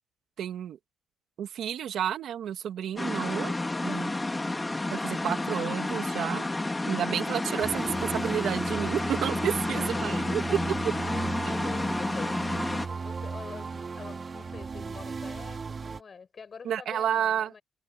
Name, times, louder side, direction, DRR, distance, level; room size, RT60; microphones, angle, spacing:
voice 1, 0.4-0.8 1.4-3.5 3.8-4.1 4.9-6.4 6.8-10.4 16.6-17.5, right 9 dB, 70° right, 2.4 m, -31 dB
sound 1, 3.0-12.9, left 2 dB, 15° left, 2.8 m, -30 dB
voice 2, 3.1-4.1 9.6-17.6, left 5 dB, 40° left, 7.6 m, -46 dB
sound 2, 7.6-16.0, right 5 dB, 35° right, 2.2 m, -36 dB
cardioid pair, 90°, 0 cm